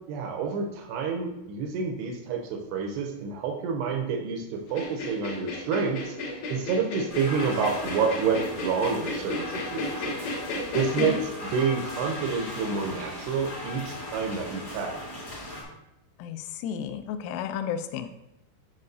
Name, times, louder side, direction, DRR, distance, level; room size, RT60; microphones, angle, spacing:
voice 1, 0.1-10.1 10.7-14.9, right 5 dB, 80° right, 2 dB, 2.5 m, -29 dB
sound 1, 4.7-11.2, left 2 dB, 70° left, 2.4 m, -34 dB
sound 2, 7.1-15.6, left 1 dB, 35° left, 1.2 m, -38 dB
voice 2, 10.7-11.2 16.2-18.1, left 8 dB, 90° left, 9 dB, 3.1 m, -32 dB
10.5 x 5.4 x 2.6 m, 0.91 s
omnidirectional pair, 5.5 m